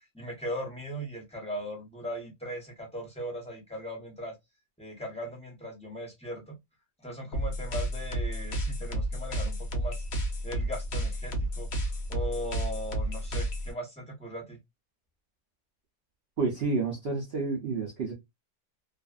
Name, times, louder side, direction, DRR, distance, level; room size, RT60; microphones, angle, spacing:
voice 1, 0.1-4.3 4.8-6.5 7.0-10.0 10.4-11.7 12.1-14.6, equal, 5° left, 0.6 m, -38 dB
sound 1, 7.3-13.7, right 1 dB, 65° left, 0.6 m, -31 dB
voice 2, 16.4-18.1, right 4 dB, 70° right, 0.5 m, -29 dB
2.5 x 2.4 x 2.3 m
omnidirectional pair, 1.7 m